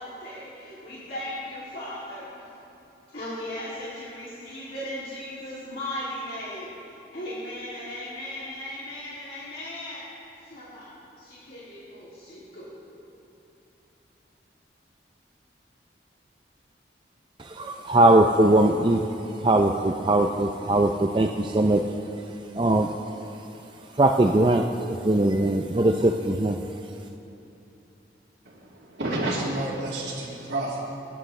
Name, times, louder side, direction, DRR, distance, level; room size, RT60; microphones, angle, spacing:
voice 1, 0.0-2.4 3.1-10.0 10.4-10.9 11.2-12.7, left 1 dB, 55° left, -10 dB, 2.6 m, -37 dB
voice 2, 17.4-19.0 19.4-21.8 22.6-22.9 24.0-26.6, right 1 dB, 25° right, 3 dB, 0.4 m, -20 dB
voice 3, 28.5-31.0, right 1 dB, 80° right, -8 dB, 2.1 m, -30 dB
27.0 x 10.0 x 3.2 m, 2.9 s
head